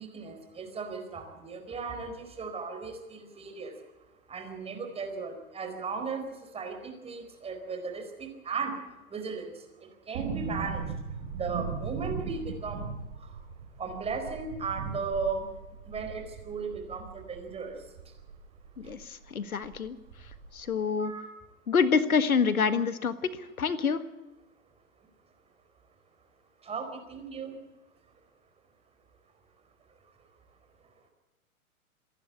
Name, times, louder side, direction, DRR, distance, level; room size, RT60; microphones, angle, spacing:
voice 1, 0.0-3.8 4.3-8.8 9.1-10.9 11.4-12.9 13.2-13.4 13.8-15.5 15.8-18.1 18.8-18.9 21.0-21.3 26.6-27.6 30.0-30.1, right 4 dB, 15° right, 5 dB, 4.4 m, -36 dB
sound 1, 10.1-19.0 19.2-19.3 19.6-20.6 20.9-21.0, right 6 dB, 50° right, 6.1 m, -39 dB
voice 2, 18.8-20.0 20.5-21.1 21.7-24.0, left 5 dB, 75° left, 13 dB, 1.6 m, -27 dB
26.5 x 11.5 x 8.4 m, 1.1 s
figure-of-eight pair, 115°, 43 cm